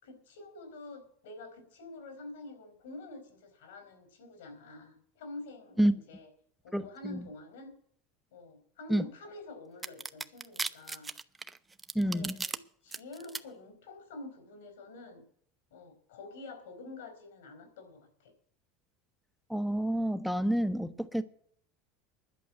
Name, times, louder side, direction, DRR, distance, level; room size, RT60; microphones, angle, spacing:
voice 1, 0.0-6.3 6.6-7.7 8.3-11.1 12.0-15.2 15.7-18.3, left 2 dB, 70° left, 4.6 m, -47 dB
voice 2, 6.7-7.3 8.9-9.1 11.9-12.4 19.5-21.2, right 1 dB, ahead, 1.2 m, -29 dB
sound 1, 9.8-12.6 12.9-13.4, right 4 dB, 20° right, 0.8 m, -36 dB
11.5 x 6.8 x 9.7 m
hypercardioid pair, 75°, 0 cm